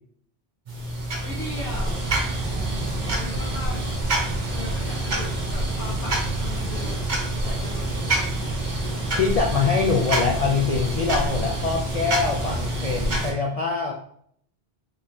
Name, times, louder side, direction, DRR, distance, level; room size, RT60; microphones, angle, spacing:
sound 1, 0.7-13.3, right 1 dB, 45° right, 0.9 m, -26 dB
voice 1, 1.2-2.0 3.0-4.0 4.5-7.0 7.4-7.9, left 2 dB, 85° left, -2 dB, 1.0 m, -38 dB
voice 2, 2.4-3.2 9.1-13.9, left 5 dB, 65° left, 0 dB, 0.3 m, -24 dB
3.8 x 3.4 x 2.6 m, 0.63 s
omnidirectional pair, 1.2 m